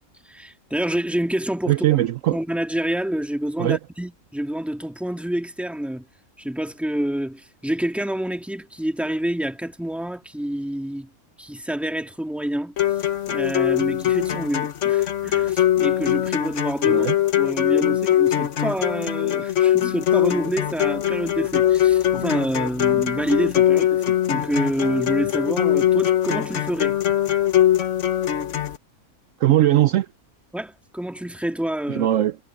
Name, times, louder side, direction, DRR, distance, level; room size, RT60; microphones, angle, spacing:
voice 1, 0.2-1.8 2.3-6.1 6.4-11.1 11.4-12.7 13.3-17.1 17.4-27.4 30.5-32.1, right 1 dB, ahead, 1.9 m, -27 dB
voice 2, 1.7-2.4 3.6-3.8 16.9-17.2 29.4-30.1 31.9-32.4, right 14 dB, 70° right, 0.9 m, -19 dB
sound 1, 12.8-28.8, left 11 dB, 60° left, 1.2 m, -21 dB
omnidirectional pair, 1.5 m